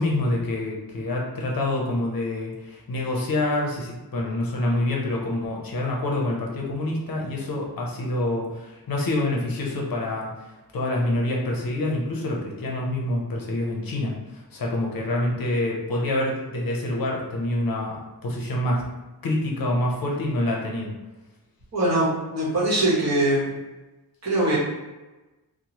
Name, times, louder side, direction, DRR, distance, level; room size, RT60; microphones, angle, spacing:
voice 1, 0.0-10.3 10.7-18.8 19.2-20.9, left 1 dB, 60° left, -2 dB, 0.6 m, -26 dB
voice 2, 21.7-23.5 24.2-24.6, right 1 dB, 40° right, -7 dB, 1.0 m, -22 dB
2.9 x 2.1 x 2.8 m, 1.1 s
wide cardioid pair, 170°, 39 cm